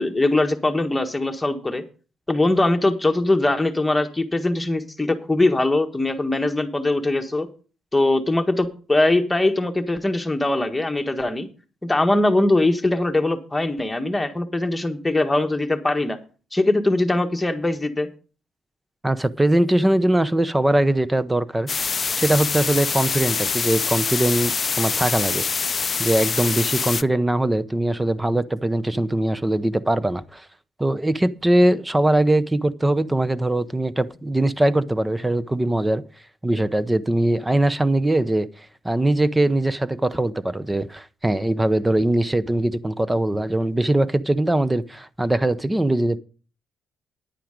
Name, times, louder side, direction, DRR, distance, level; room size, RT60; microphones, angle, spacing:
voice 1, 0.0-1.8 2.3-7.5 7.9-11.5 11.8-16.2 16.5-18.1, left 2 dB, 10° left, 1.5 m, -21 dB
voice 2, 19.0-25.4 26.0-30.5 30.8-36.0 36.4-38.5 38.8-46.2, right 1 dB, 15° right, 0.7 m, -21 dB
sound 1, 21.7-27.0, left 5 dB, 40° left, 0.5 m, -25 dB
10.0 x 9.1 x 5.1 m
cardioid pair, 90°, 0 cm